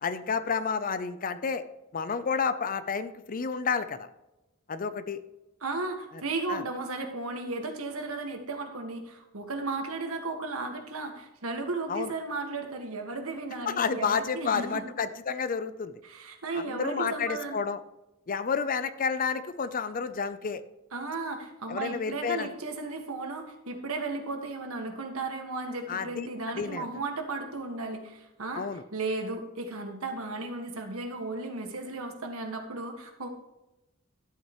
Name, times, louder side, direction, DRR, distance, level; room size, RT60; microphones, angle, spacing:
voice 1, 0.0-1.6 1.9-4.1 4.7-5.2 6.5-6.6 11.9-12.1 13.7-15.9 16.5-17.8 18.3-20.6 21.7-22.5 25.9-26.9 28.5-28.8, left 5 dB, 40° left, 13 dB, 0.5 m, -30 dB
voice 2, 5.6-14.8 16.0-17.6 20.9-28.7 28.9-33.3, right 3 dB, 75° right, 4 dB, 1.7 m, -35 dB
12.5 x 8.4 x 3.1 m, 0.98 s
head